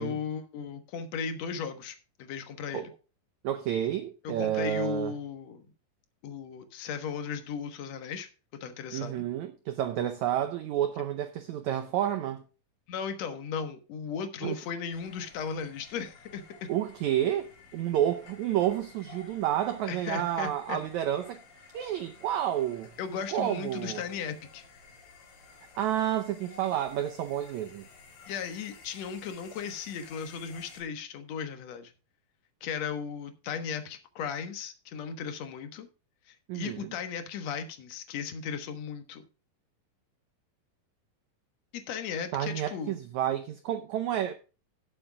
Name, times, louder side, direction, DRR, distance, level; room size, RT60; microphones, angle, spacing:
voice 1, 0.0-2.9 4.2-5.7 6.2-8.3 8.6-9.2 12.9-16.7 19.9-20.8 23.0-24.6 28.3-31.9 32.6-35.9 36.3-39.3 41.7-43.0, left 6 dB, 60° left, 2.1 m, -36 dB
voice 2, 3.4-5.1 8.9-12.4 14.4-14.5 16.7-21.4 21.7-22.9 23.3-24.0 25.8-27.9 36.5-36.9 42.3-44.3, right 11 dB, 75° right, 1.7 m, -30 dB
sound 1, 14.9-30.8, left 4 dB, 80° left, 4.8 m, -53 dB
18.5 x 7.7 x 2.3 m
omnidirectional pair, 4.1 m